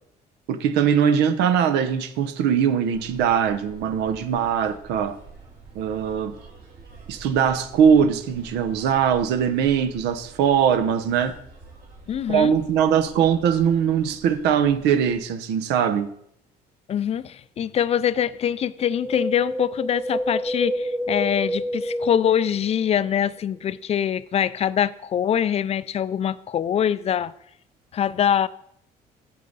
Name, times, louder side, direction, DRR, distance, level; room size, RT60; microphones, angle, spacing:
voice 1, 0.5-5.2 5.7-6.4 7.1-11.4 12.3-16.1, right 8 dB, 85° right, 0.7 m, -21 dB
sound 1, 2.9-15.2, right 4 dB, 60° right, 3.8 m, -47 dB
voice 2, 12.1-12.5 16.9-27.3 27.9-28.5, left 9 dB, 40° left, 0.4 m, -24 dB
Wind, 18.8-23.1 23.4-23.5, equal, 10° right, 0.6 m, -29 dB
8.5 x 7.3 x 4.0 m
cardioid pair, 110°, 17 cm